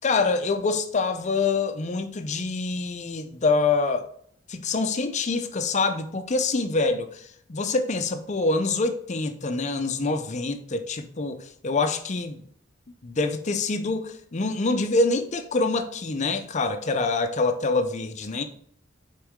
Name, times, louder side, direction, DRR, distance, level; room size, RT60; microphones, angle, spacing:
voice 1, 0.0-4.1 4.5-12.4 13.0-18.4, left 3 dB, 35° left, 0.5 m, -25 dB
6.0 x 4.6 x 3.6 m
head